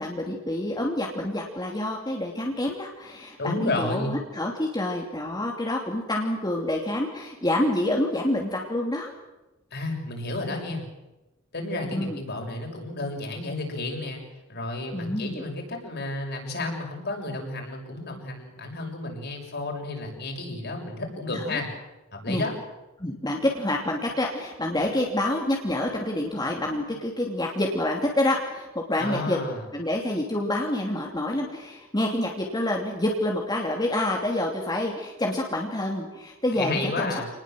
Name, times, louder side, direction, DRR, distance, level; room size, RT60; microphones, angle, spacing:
voice 1, 0.0-9.1 11.9-12.2 14.9-15.4 21.3-21.6 22.3-22.4 23.0-29.4 29.7-37.2, left 1 dB, 20° left, 0 dB, 2.9 m, -27 dB
voice 2, 3.4-4.1 9.7-10.8 11.5-14.2 14.5-21.7 22.2-22.5 29.0-29.6 36.5-37.3, left 2 dB, 55° left, 2 dB, 6.8 m, -31 dB
27.5 x 20.0 x 7.7 m, 1.0 s
head